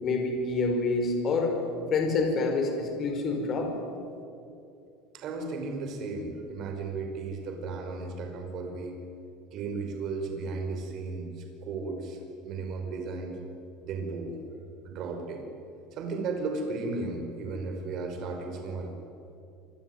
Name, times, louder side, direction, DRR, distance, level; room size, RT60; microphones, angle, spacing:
voice 1, 0.0-1.6 1.9-3.7, left 3 dB, 30° left, 4 dB, 5.2 m, -27 dB
voice 2, 5.1-9.0 9.5-11.3 11.6-13.4 13.8-15.4 15.9-18.9, right 3 dB, 40° right, 4 dB, 5.4 m, -35 dB
27.5 x 23.0 x 9.5 m, 2.6 s
cardioid pair, 160°, 0 cm